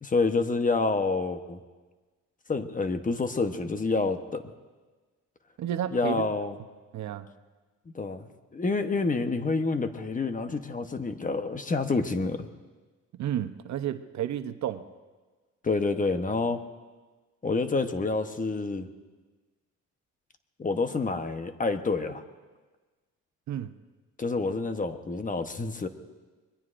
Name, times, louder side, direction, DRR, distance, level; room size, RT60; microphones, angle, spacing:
voice 1, 0.0-1.6 2.5-4.4 5.9-6.5 7.9-12.5 15.6-16.6 17.4-18.9 20.6-22.2 24.2-25.9, left 3 dB, 25° left, 8 dB, 1.0 m, -28 dB
voice 2, 5.6-6.2 6.9-7.3 13.1-14.9 23.5-23.7, right 10 dB, 65° right, 10 dB, 0.8 m, -31 dB
25.5 x 21.5 x 2.6 m, 1.3 s
cardioid pair, 90°, 30 cm